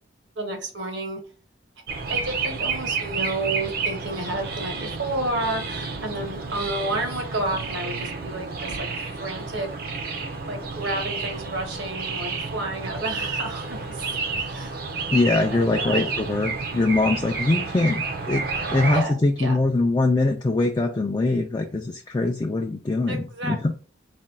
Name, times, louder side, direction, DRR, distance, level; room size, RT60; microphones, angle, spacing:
voice 1, 0.4-1.2 2.1-8.9 9.2-9.7 10.5-14.1 14.4-14.7 15.5-16.1 18.9-19.1 19.4-19.6 23.1-23.7, right 2 dB, 90° right, 4 dB, 1.1 m, -31 dB
sound 1, 1.9-19.0, right 4 dB, 55° right, 0.5 m, -30 dB
voice 2, 15.1-23.7, left 2 dB, 25° left, 2 dB, 0.3 m, -23 dB
4.2 x 2.2 x 3.7 m, 0.37 s
head